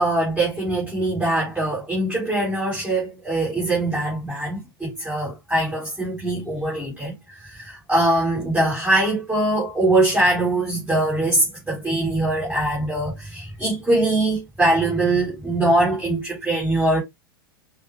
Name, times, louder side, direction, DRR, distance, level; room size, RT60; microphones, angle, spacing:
voice 1, 0.0-17.0, right 2 dB, 5° right, 2.5 m, -22 dB
5.3 x 2.3 x 2.9 m
figure-of-eight pair, 95°, 12 cm